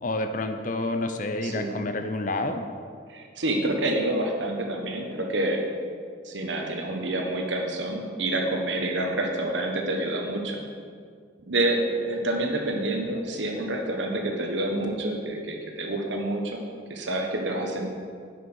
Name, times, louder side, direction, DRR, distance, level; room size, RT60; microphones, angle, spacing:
voice 1, 0.0-2.6, left 2 dB, 45° left, 7 dB, 0.6 m, -29 dB
voice 2, 1.4-1.7 3.1-5.6 6.2-10.6 11.4-16.6 16.9-17.9, right 1 dB, 75° right, 2 dB, 1.3 m, -28 dB
9.3 x 5.9 x 6.3 m, 2.1 s
head